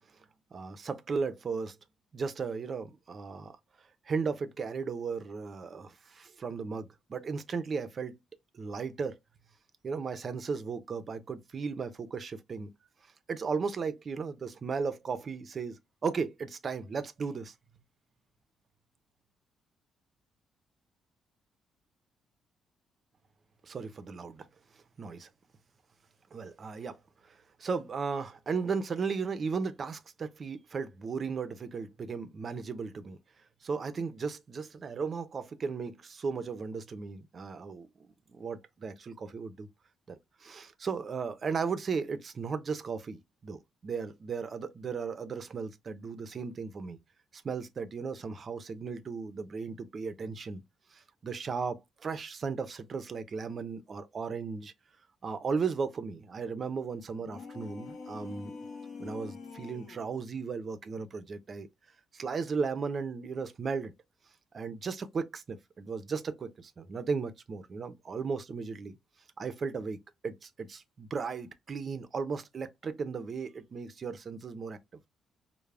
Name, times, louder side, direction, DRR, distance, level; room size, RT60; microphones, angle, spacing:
voice 1, 0.5-1.8 2.1-3.6 4.1-8.2 8.5-9.2 9.8-12.7 13.3-17.5 23.6-24.5 25.0-25.3 26.3-27.0 27.3-33.2 33.6-37.9 38.3-39.7 40.1-47.0 47.3-50.6 50.9-54.7 55.2-58.6 59.0-61.7 62.1-63.9 64.5-69.0 69.4-70.0 70.2-74.8, right 5 dB, 45° right, 0.4 m, -36 dB
sound 1, 57.2-60.1, left 4 dB, 60° left, 0.6 m, -45 dB
2.3 x 2.0 x 3.2 m
cardioid pair, 90°, 0 cm